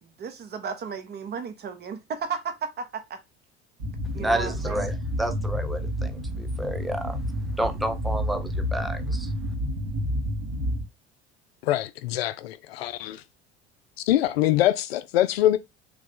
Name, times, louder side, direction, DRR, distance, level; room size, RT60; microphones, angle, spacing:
voice 1, 0.0-3.2 4.1-4.9, right 6 dB, 30° right, 1.0 m, -34 dB
sound 1, 3.8-10.8, equal, 60° right, 1.8 m, -29 dB
voice 2, 4.2-7.2 7.6-9.3, right 1 dB, ahead, 0.6 m, -30 dB
voice 3, 11.6-13.2 14.1-15.6, left 13 dB, 65° left, 0.5 m, -23 dB
3.7 x 3.3 x 3.7 m
figure-of-eight pair, 65°, 33 cm